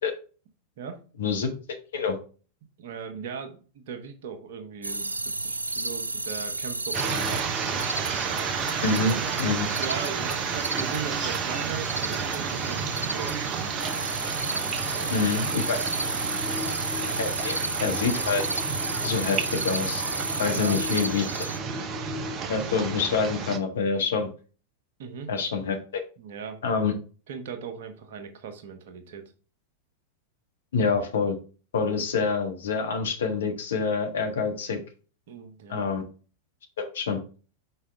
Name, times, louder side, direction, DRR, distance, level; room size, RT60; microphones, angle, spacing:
voice 1, 1.2-1.5 1.9-2.2 8.8-9.7 15.1-15.8 17.2-17.5 17.8-18.4 19.0-20.0 20.4-21.2 22.5-24.3 25.3-26.0 26.6-26.9 30.7-31.4 31.7-34.8 35.7-36.0 36.8-37.2, left 5 dB, 65° left, 4 dB, 1.4 m, -26 dB
voice 2, 2.8-7.9 9.0-9.5 9.8-14.0 14.9-15.7 16.4-16.5 20.5-20.8 25.0-25.3 26.2-26.9 27.3-29.3 35.3-35.9, right 6 dB, 55° right, 7 dB, 1.1 m, -39 dB
sound 1, 4.8-21.6, right 2 dB, 80° right, 0.4 m, -32 dB
sound 2, 6.9-23.6, right 5 dB, 30° right, 0.8 m, -31 dB
5.6 x 4.9 x 3.4 m, 0.36 s
figure-of-eight pair, 90°, 0 cm